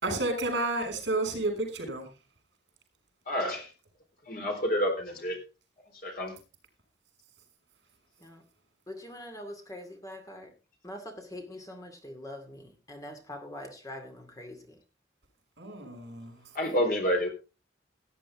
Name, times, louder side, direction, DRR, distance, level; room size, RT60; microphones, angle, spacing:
voice 1, 0.0-2.1 15.6-16.3, right 2 dB, 70° right, 5.6 m, -31 dB
voice 2, 3.3-3.7 4.3-5.4 6.0-6.3 16.5-17.3, equal, 50° left, 3.9 m, -28 dB
voice 3, 8.9-10.5 10.8-14.8, left 1 dB, 20° left, 2.3 m, -43 dB
16.5 x 9.9 x 3.6 m
head